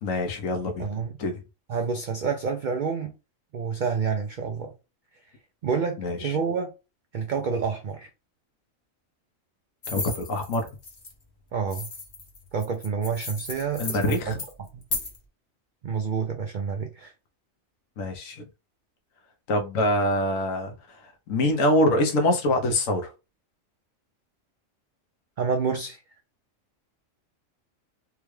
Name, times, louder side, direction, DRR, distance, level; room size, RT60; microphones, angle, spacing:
voice 1, 0.0-0.9 1.2-1.4 6.0-6.3 9.9-10.7 13.8-14.4 18.0-18.5 19.5-21.0 21.3-23.1, left 1 dB, 75° left, 1.2 m, -25 dB
voice 2, 0.8-1.2 1.7-3.1 3.5-4.7 5.6-6.7 7.1-8.1 11.5-11.9 12.5-14.3 14.7-14.8 15.8-17.1 25.4-26.0, right 5 dB, 70° right, 0.4 m, -28 dB
sound 1, 9.8-11.1 11.7-15.2, left 3 dB, 35° left, 0.8 m, -35 dB
3.6 x 2.3 x 3.2 m
omnidirectional pair, 1.4 m